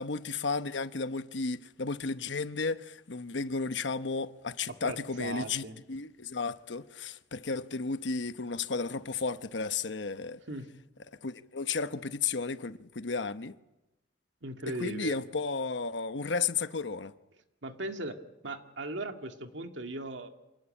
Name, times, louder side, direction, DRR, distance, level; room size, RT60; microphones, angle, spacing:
voice 1, 0.0-10.4 11.2-13.5 14.8-17.1, left 4 dB, 75° left, 1.0 m, -33 dB
voice 2, 4.7-5.8 10.5-10.7 14.4-15.2 17.6-20.3, right 2 dB, 80° right, 2.2 m, -38 dB
27.0 x 18.5 x 9.0 m
head